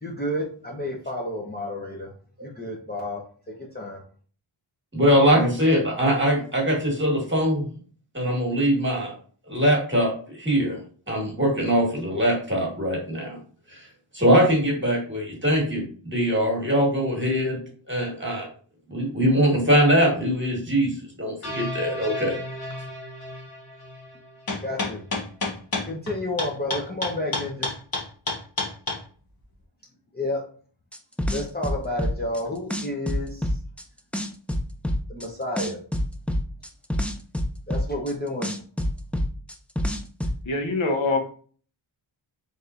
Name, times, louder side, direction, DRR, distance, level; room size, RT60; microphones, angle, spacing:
voice 1, 0.0-2.1 2.4-4.0 24.6-25.0 25.8-27.7 30.1-30.4 31.3-33.6 35.1-35.8 37.7-38.5, left 1 dB, 20° left, -3 dB, 0.9 m, -31 dB
voice 2, 4.9-7.7 8.1-9.1 9.5-10.8 11.1-13.4 13.7-13.9 14.1-17.6 17.9-18.5 18.9-22.4, equal, 25° right, -1 dB, 1.7 m, -22 dB
sound 1, 21.4-24.7, left 1 dB, 85° left, 1.7 m, -35 dB
sound 2, 24.5-29.0, left 2 dB, 45° left, 1.4 m, -27 dB
sound 3, 30.9-32.4 32.7-33.8 34.1-35.3 35.6-38.1 38.4-40.4, left 1 dB, 5° left, 0.4 m, -26 dB
voice 3, 40.4-41.2, left 3 dB, 65° left, 3 dB, 1.0 m, -24 dB
4.2 x 3.5 x 2.5 m, 0.43 s
wide cardioid pair, 65°, 50 cm